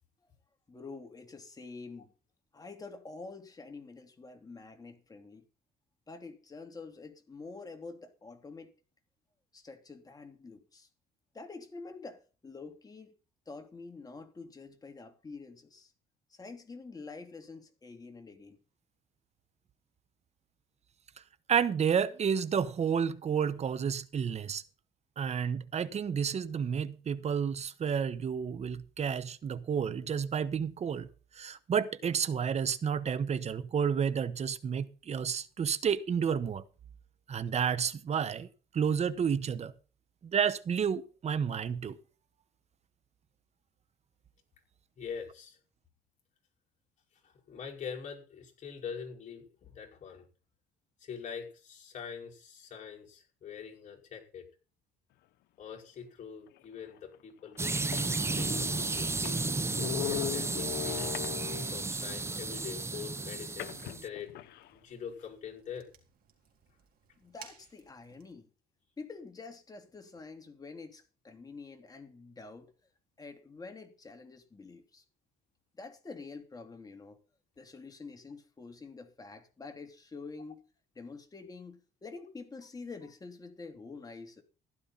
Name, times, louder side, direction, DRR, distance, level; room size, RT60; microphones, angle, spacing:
voice 1, 0.7-2.1 2.5-5.4 6.1-8.7 9.5-10.9 11.3-13.1 13.5-15.9 16.3-18.6 67.2-68.5 69.0-72.7 73.2-75.0 75.8-77.2 77.6-80.6 80.9-84.4, left 4 dB, 20° left, 2.9 m, -47 dB
voice 2, 21.5-24.6 25.2-31.1 31.3-36.6 37.3-38.5 38.7-39.7 40.2-42.0, right 7 dB, 40° right, 1.3 m, -30 dB
voice 3, 45.0-45.6 47.5-50.2 51.0-54.5 55.6-58.7 58.9-59.4 60.1-61.1 61.7-64.5 64.8-65.9, left 7 dB, 45° left, 5.4 m, -44 dB
sound 1, 56.9-57.0 57.6-57.7 57.8-61.9 63.6-64.7, left 13 dB, 75° left, 0.8 m, -39 dB
sound 2, 57.6-64.1, right 3 dB, 15° right, 0.7 m, -33 dB
Fire, 61.5-68.3, right 8 dB, 60° right, 4.0 m, -60 dB
15.5 x 12.0 x 4.2 m
cardioid pair, 110°, 17 cm